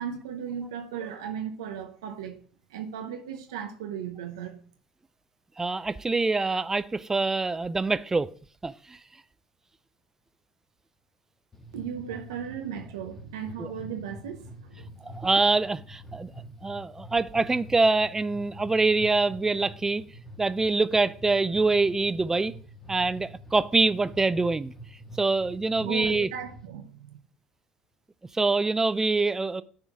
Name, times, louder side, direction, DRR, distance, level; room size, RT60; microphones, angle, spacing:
voice 1, 0.0-2.4 2.7-4.6 11.7-15.0 25.8-27.2, right 8 dB, 85° right, 0.8 m, -36 dB
voice 2, 5.6-8.3 8.6-9.0 13.6-13.7 15.0-16.3 16.6-20.0 20.4-22.5 22.9-24.7 25.2-26.3 28.3-29.6, right 3 dB, 20° right, 0.4 m, -25 dB
sound 1, 11.5-26.7, equal, 20° left, 1.8 m, -46 dB
10.0 x 4.5 x 3.6 m
hypercardioid pair, 70°, 2 cm